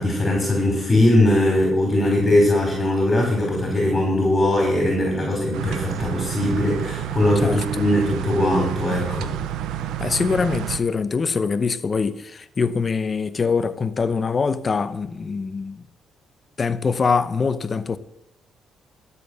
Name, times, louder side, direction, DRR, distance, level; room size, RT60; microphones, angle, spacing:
voice 1, 0.0-9.3, left 1 dB, 20° left, 5.0 m, -20 dB
sound 1, 5.5-10.8, right 11 dB, 90° right, 0.7 m, -29 dB
voice 2, 7.4-7.8 10.0-15.8 16.6-18.0, left 5 dB, 40° left, 0.9 m, -24 dB
12.5 x 8.5 x 6.6 m
cardioid pair, 85°, 0 cm